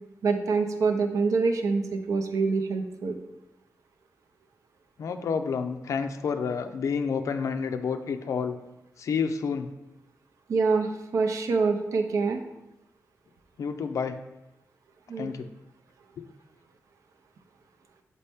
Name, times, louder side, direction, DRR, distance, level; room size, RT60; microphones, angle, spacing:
voice 1, 0.2-3.2 10.5-12.4 15.1-15.3, right 4 dB, 70° right, 6 dB, 0.6 m, -25 dB
voice 2, 5.0-8.6 9.0-9.7 13.6-14.2 15.2-15.5, left 6 dB, 65° left, 7 dB, 0.4 m, -29 dB
7.2 x 4.1 x 3.5 m, 0.92 s
wide cardioid pair, 145°, 6 cm